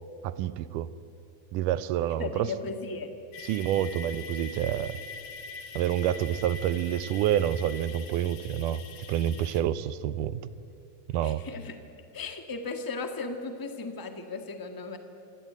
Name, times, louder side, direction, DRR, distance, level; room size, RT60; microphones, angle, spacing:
voice 1, 0.2-0.9 1.5-2.5 3.4-5.0 5.8-8.8 9.1-10.5 11.1-11.4, right 11 dB, 90° right, 15 dB, 2.3 m, -28 dB
voice 2, 2.2-3.1 11.2-11.8 12.1-15.0, left 3 dB, 10° left, 6 dB, 0.9 m, -36 dB
sound 1, 3.3-9.6, left 4 dB, 65° left, 2.9 m, -43 dB
28.0 x 17.0 x 9.4 m, 2.7 s
omnidirectional pair, 3.6 m